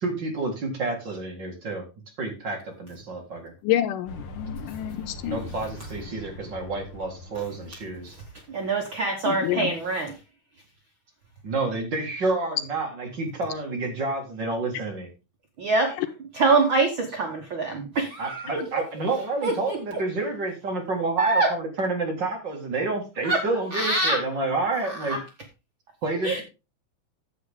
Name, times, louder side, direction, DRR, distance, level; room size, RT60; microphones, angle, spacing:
voice 1, 0.0-1.9 2.2-3.5 5.3-8.2 11.4-15.1 18.2-25.2 26.0-26.4, right 3 dB, 40° right, 2 dB, 2.2 m, -29 dB
voice 2, 3.6-5.5 9.3-9.7, left 12 dB, 85° left, 11 dB, 2.5 m, -28 dB
sound 1, 4.1-8.8, left 2 dB, 65° left, 1.1 m, -42 dB
voice 3, 8.5-10.2 15.6-16.0 16.3-18.6 19.4-20.0 21.2-21.5 23.2-23.4 23.7-24.2 24.8-25.2 26.2-26.4, right 3 dB, 60° right, 3 dB, 1.3 m, -25 dB
9.9 x 7.9 x 3.6 m, 0.26 s
omnidirectional pair, 3.7 m